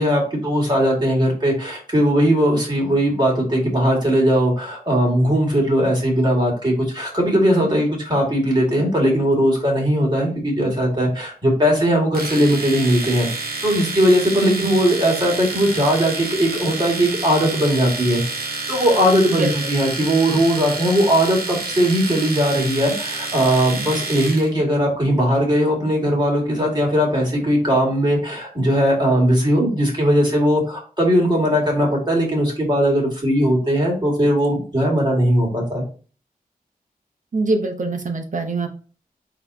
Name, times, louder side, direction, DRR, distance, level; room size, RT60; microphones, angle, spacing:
voice 1, 0.0-13.3 13.6-18.2 18.7-35.9, equal, 30° right, -2 dB, 2.1 m, -19 dB
Domestic sounds home sounds, 12.1-24.5, right 3 dB, 85° right, 1.0 m, -29 dB
voice 2, 14.4-14.7 19.3-19.5 37.3-38.7, right 3 dB, 55° right, 4 dB, 0.8 m, -23 dB
4.0 x 3.0 x 3.9 m, 0.38 s
wide cardioid pair, 75°, 15 cm